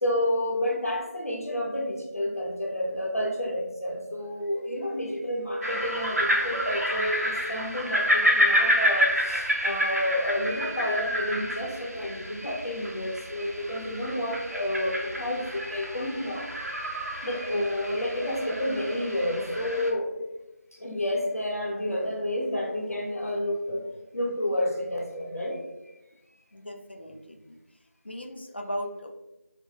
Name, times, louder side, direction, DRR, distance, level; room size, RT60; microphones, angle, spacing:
voice 1, 0.0-16.5 17.2-20.1 20.7-23.8 24.1-25.6, left 1 dB, 65° left, -1 dB, 0.8 m, -30 dB
sound 1, 5.6-19.9, equal, 70° right, 0.7 m, -29 dB
voice 2, 26.5-27.6 28.0-29.1, equal, 40° left, 4 dB, 0.3 m, -37 dB
4.9 x 2.2 x 2.3 m, 1.0 s
figure-of-eight pair, 175°, 9 cm